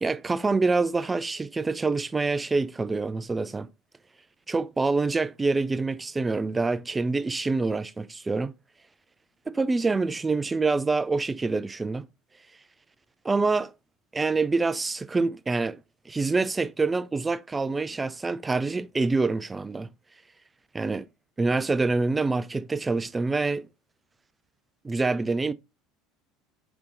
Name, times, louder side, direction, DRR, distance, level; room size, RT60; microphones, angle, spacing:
voice 1, 0.0-3.7 4.5-8.5 9.5-12.0 13.2-13.7 14.1-15.8 16.1-19.9 20.7-21.1 21.4-23.7 24.8-25.5, right 3 dB, 15° right, 0.4 m, -26 dB
3.6 x 3.5 x 3.8 m
figure-of-eight pair, 65°, 0 cm